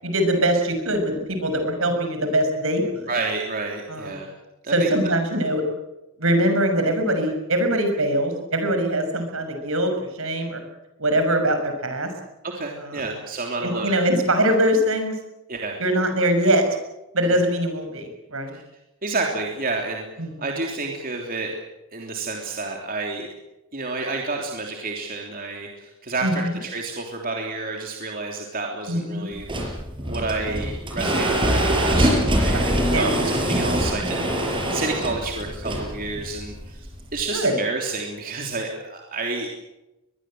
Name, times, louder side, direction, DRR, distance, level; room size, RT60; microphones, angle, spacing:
voice 1, 0.0-3.1 3.9-4.2 4.7-5.6 6.2-10.6 11.0-12.1 12.8-13.1 13.6-15.1 15.8-16.6 17.1-18.5 20.2-20.3 26.2-26.6 28.9-29.3 32.5-33.3 37.3-37.5, right 1 dB, 65° right, 6 dB, 6.5 m, -22 dB
voice 2, 3.1-4.3 4.6-5.1 12.4-13.9 14.4-14.5 15.5-15.8 18.5-18.6 19.0-20.1 20.4-21.5 21.9-23.3 23.7-29.7 30.0-39.5, right 3 dB, 40° right, 1 dB, 3.3 m, -30 dB
sound 1, 29.3-37.2, equal, 25° right, 6.2 m, -24 dB
23.0 x 22.0 x 7.9 m, 0.98 s
head